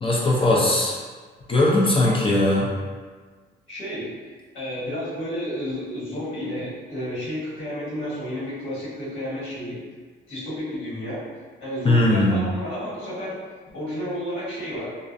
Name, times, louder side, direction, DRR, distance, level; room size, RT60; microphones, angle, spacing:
voice 1, 0.0-1.0 1.5-2.7 11.8-12.4, left 1 dB, 25° left, -5 dB, 0.5 m, -19 dB
voice 2, 3.7-4.1 4.5-9.8 10.3-11.2 11.6-13.4 13.7-14.9, equal, 75° left, -9 dB, 1.5 m, -31 dB
2.4 x 2.0 x 2.6 m, 1.4 s
cardioid pair, 90°, 20 cm